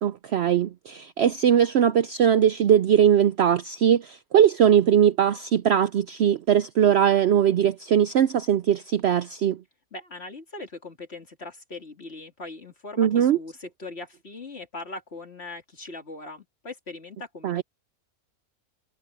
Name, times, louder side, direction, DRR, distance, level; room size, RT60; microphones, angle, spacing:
voice 1, 0.0-9.6 13.0-13.4 17.4-17.6, right 9 dB, 65° right, 0.7 m, -20 dB
voice 2, 9.9-17.6, left 2 dB, 45° left, 3.2 m, -40 dB
omnidirectional pair, 1.5 m